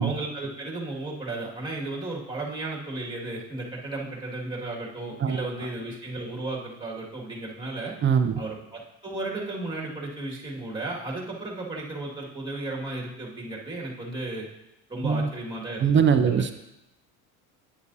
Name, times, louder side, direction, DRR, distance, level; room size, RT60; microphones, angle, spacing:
voice 1, 0.0-7.9 8.4-14.5 14.9-16.4, right 2 dB, 10° right, -3 dB, 2.0 m, -34 dB
voice 2, 8.0-8.3 15.0-15.3 15.8-16.5, right 7 dB, 30° right, 9 dB, 0.5 m, -21 dB
9.6 x 6.9 x 2.7 m, 0.88 s
supercardioid pair, 105°, 43 cm